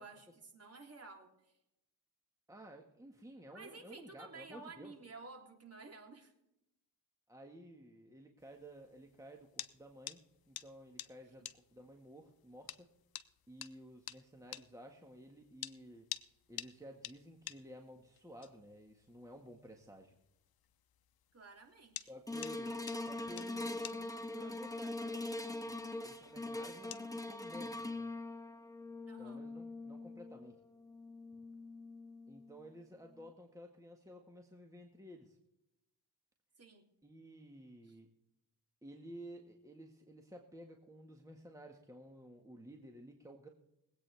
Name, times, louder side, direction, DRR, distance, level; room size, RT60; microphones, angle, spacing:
voice 1, 0.0-1.5 3.5-6.3 21.3-22.1 29.1-29.4 36.6-36.9 37.8-38.0, right 3 dB, 40° right, 1 dB, 3.4 m, -53 dB
voice 2, 2.5-4.9 7.3-12.9 13.5-16.1 16.5-20.2 22.1-25.7 26.0-28.0 29.2-30.6 32.3-35.4 37.0-38.1 38.8-43.5, right 1 dB, 10° right, 2 dB, 1.7 m, -54 dB
sound 1, 8.4-27.2, left 11 dB, 65° left, 0.8 m, -52 dB
sound 2, 22.3-32.7 33.2-33.3, left 2 dB, 10° left, 1.6 m, -43 dB
22.0 x 8.8 x 3.5 m, 0.86 s
cardioid pair, 85°, 39 cm